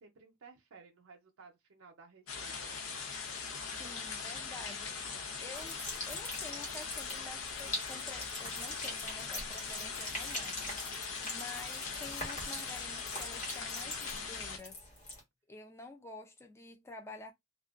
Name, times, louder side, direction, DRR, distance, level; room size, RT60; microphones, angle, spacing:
voice 1, 0.0-2.8, right 5 dB, 90° right, 0.6 m, -57 dB
sound 1, 2.3-14.6, left 5 dB, 85° left, 0.7 m, -41 dB
voice 2, 3.7-14.9 15.5-17.3, left 2 dB, 15° left, 0.3 m, -50 dB
sound 2, 5.5-15.2, left 1 dB, 40° left, 1.2 m, -43 dB
2.5 x 2.2 x 2.4 m
head